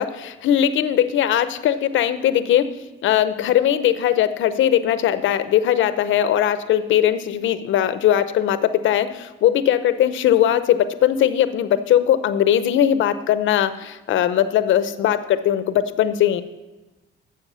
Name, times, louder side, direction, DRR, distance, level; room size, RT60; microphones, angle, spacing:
voice 1, 0.0-2.7 3.0-16.4, left 10 dB, 75° left, 13 dB, 0.7 m, -19 dB
12.5 x 7.7 x 5.6 m, 1.1 s
cardioid pair, 90°, 20 cm